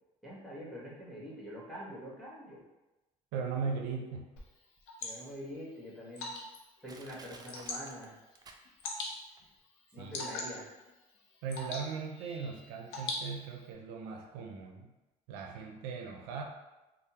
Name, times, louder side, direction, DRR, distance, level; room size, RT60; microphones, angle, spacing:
voice 1, 0.2-2.6 5.0-6.3 6.8-8.1 9.9-10.7, equal, ahead, -6 dB, 1.3 m, -45 dB
voice 2, 3.3-4.3 10.0-10.3 11.4-14.9 15.3-16.4, right 5 dB, 90° right, 2 dB, 0.4 m, -38 dB
Water / Drip, 4.4-13.7, left 3 dB, 90° left, 0.6 m, -44 dB
Crushing, 4.8-4.9 5.5-5.6 6.3-6.4 6.9-9.1 9.4-9.5, right 3 dB, 25° right, 0.4 m, -53 dB
3.3 x 2.0 x 2.8 m, 1.0 s
supercardioid pair, 90°, 16 cm